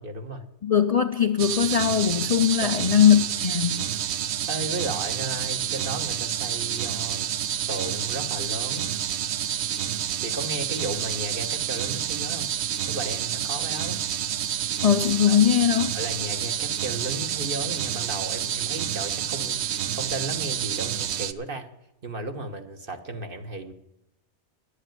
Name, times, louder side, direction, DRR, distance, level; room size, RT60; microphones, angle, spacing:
voice 1, 0.0-0.4 2.6-2.8 4.5-7.3 7.7-8.9 10.2-12.5 12.9-14.0 15.3-15.4 15.9-21.7 22.0-23.7, right 2 dB, 50° right, 1.4 m, -34 dB
voice 2, 0.6-3.9 14.8-15.9, left 8 dB, 45° left, 0.5 m, -20 dB
sound 1, 1.4-21.3, right 10 dB, 75° right, 0.9 m, -29 dB
11.5 x 8.2 x 9.0 m
omnidirectional pair, 1.2 m